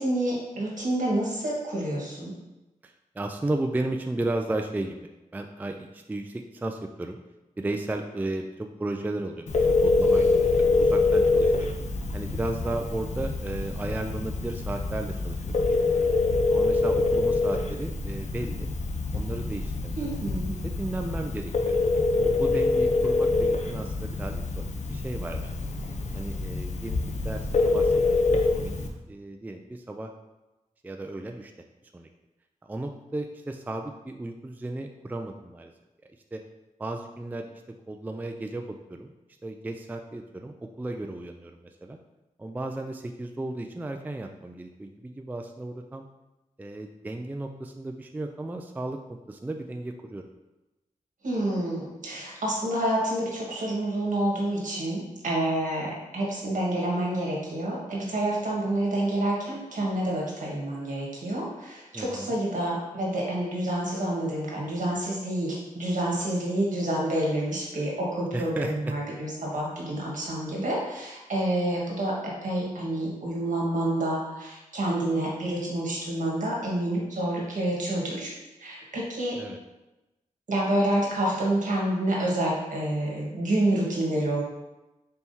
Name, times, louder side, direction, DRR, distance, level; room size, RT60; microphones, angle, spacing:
voice 1, 0.0-2.4 20.0-20.5 51.2-78.3 78.6-79.4 80.5-84.4, right 1 dB, 70° right, -4 dB, 1.4 m, -28 dB
voice 2, 2.8-5.0 5.3-7.2 7.6-11.8 12.1-16.1 16.5-18.7 19.1-20.1 20.6-21.7 22.1-25.6 26.1-30.1 30.8-31.5 31.9-32.1 32.6-35.7 36.3-36.4 36.8-37.5 37.9-39.1 39.4-42.0 42.4-46.1 46.6-50.2 61.9-62.4 68.3-68.9 79.3-79.6, right 2 dB, 10° right, 4 dB, 0.3 m, -34 dB
Telephone, 9.5-28.9, left 3 dB, 55° left, 0.6 m, -25 dB
4.3 x 3.5 x 2.7 m, 1.0 s
cardioid pair, 50°, 14 cm